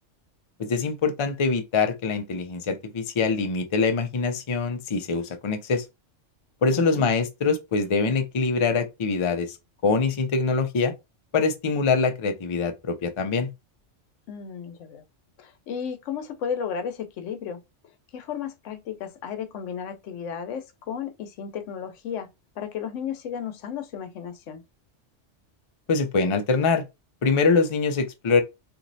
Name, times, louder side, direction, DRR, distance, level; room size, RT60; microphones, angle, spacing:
voice 1, 0.6-5.8 6.6-9.6 9.8-10.9 11.3-13.5 25.9-26.8 27.2-28.4, left 4 dB, 50° left, 0.3 m, -24 dB
voice 2, 6.7-7.1 14.3-15.0 15.4-17.6 18.1-22.3 22.6-24.6, left 7 dB, 85° left, 0.9 m, -34 dB
3.0 x 2.6 x 2.6 m
omnidirectional pair, 1.2 m